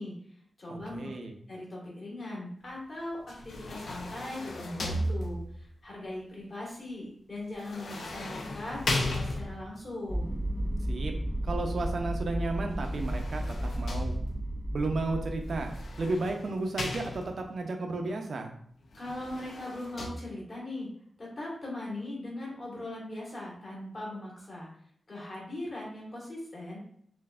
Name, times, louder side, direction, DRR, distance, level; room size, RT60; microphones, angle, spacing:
voice 1, 0.0-1.1 1.5-10.3 19.0-20.9 21.2-24.7 25.1-26.8, left 1 dB, 40° left, -5 dB, 1.6 m, -40 dB
voice 2, 0.7-1.3 10.9-11.1 11.4-14.2 14.7-15.7 16.0-18.5, right 2 dB, 60° right, 4 dB, 0.6 m, -33 dB
sound 1, 3.3-5.7 7.6-9.8 12.7-14.6 15.6-17.6 18.9-20.1, left 1 dB, 75° left, 0.5 m, -36 dB
sound 2, 10.1-16.3, right 1 dB, ahead, 0.4 m, -33 dB
5.5 x 2.5 x 2.4 m, 0.65 s
wide cardioid pair, 165°, 0 cm